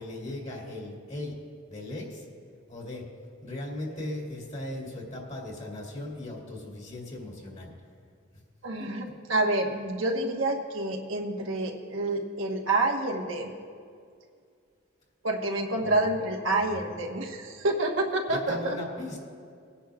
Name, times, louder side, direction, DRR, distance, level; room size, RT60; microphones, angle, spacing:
voice 1, 0.0-1.4 1.7-2.3 2.7-3.1 3.4-7.7 8.8-9.1 15.8-16.1 16.7-16.9 18.3-19.2, left 1 dB, 35° left, -2 dB, 2.5 m, -38 dB
voice 2, 8.6-13.5 15.2-18.8, right 2 dB, 80° right, 1 dB, 1.2 m, -28 dB
20.5 x 10.0 x 2.4 m, 2.2 s
head